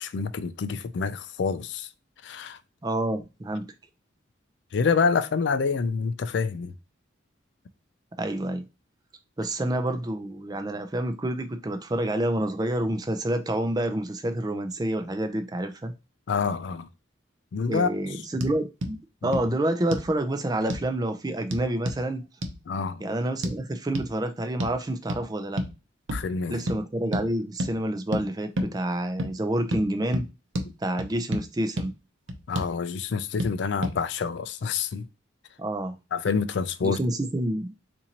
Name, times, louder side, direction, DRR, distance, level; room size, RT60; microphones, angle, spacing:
voice 1, 0.0-1.9 2.2-2.6 4.7-6.7 16.3-16.9 17.5-18.2 19.2-19.4 22.7-23.0 26.1-26.6 32.5-35.1 36.1-37.0, left 5 dB, 60° left, 0.3 m, -27 dB
voice 2, 2.8-3.7 8.2-8.6 9.4-15.9 17.7-19.0 19.2-22.2 23.0-25.6 26.5-30.3 30.8-31.9 35.6-36.0 36.8-37.7, right 1 dB, 20° right, 0.4 m, -28 dB
sound 1, 18.4-18.5 18.8-18.9 19.3-19.5 19.9-20.1 20.7-20.9 21.5-22.0 22.4-22.6 23.4-23.6 23.9-24.1 24.6-24.8 25.1-25.2 25.6-25.7 26.1-26.3 26.7-26.8 27.1-27.3 27.6-27.7 28.1-28.2 28.6-28.7 29.2-29.3 29.7-29.8 30.1-30.3 30.5-30.7 31.0-31.4 31.8-31.9 32.3-32.7 33.4-33.5 33.8-34.0, equal, 70° right, 0.7 m, -29 dB
4.1 x 2.6 x 2.8 m
head